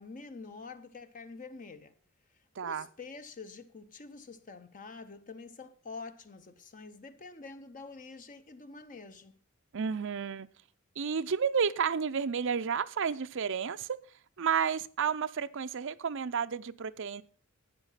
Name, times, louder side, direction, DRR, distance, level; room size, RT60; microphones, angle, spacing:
voice 1, 0.0-1.9 2.6-9.4, left 4 dB, 40° left, 0.8 m, -47 dB
voice 2, 9.7-10.5 11.0-13.9 14.4-17.2, right 6 dB, 60° right, 0.6 m, -31 dB
12.0 x 9.0 x 5.7 m
head